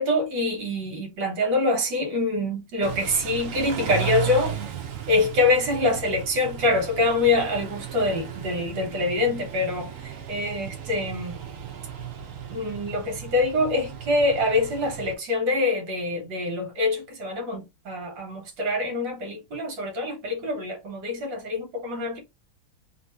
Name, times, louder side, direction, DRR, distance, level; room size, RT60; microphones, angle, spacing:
voice 1, 0.0-4.6 5.1-11.3 12.5-22.2, left 2 dB, 65° right, 1.7 m, -25 dB
Car / Idling / Accelerating revving vroom, 2.8-15.1, right 9 dB, 90° right, 0.7 m, -35 dB
3.1 x 2.9 x 4.3 m
omnidirectional pair, 2.3 m